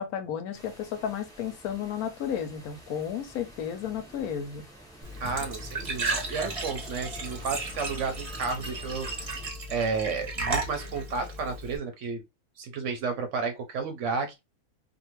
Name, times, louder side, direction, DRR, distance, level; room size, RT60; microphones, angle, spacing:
voice 1, 0.0-4.6, left 8 dB, 85° left, 1.1 m, -33 dB
sound 1, 0.5-9.5, right 1 dB, 5° left, 0.7 m, -49 dB
Glass / Trickle dribble / Fill (with liquid), 5.0-11.8, right 2 dB, 35° right, 0.5 m, -34 dB
voice 2, 5.2-9.3 9.7-12.2 12.6-14.4, right 4 dB, 65° right, 0.8 m, -32 dB
2.5 x 2.5 x 2.9 m
omnidirectional pair, 1.5 m